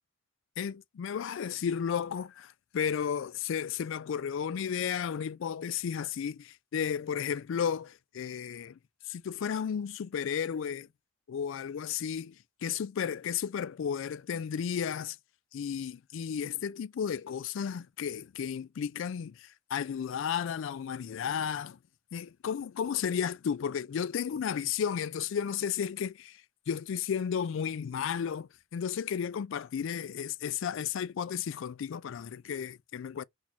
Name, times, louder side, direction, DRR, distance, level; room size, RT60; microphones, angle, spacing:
voice 1, 0.6-8.8 9.1-10.9 11.3-15.2 15.5-21.8 22.1-26.4 26.7-33.2, left 7 dB, 60° left, 0.3 m, -33 dB
4.5 x 4.1 x 2.7 m
head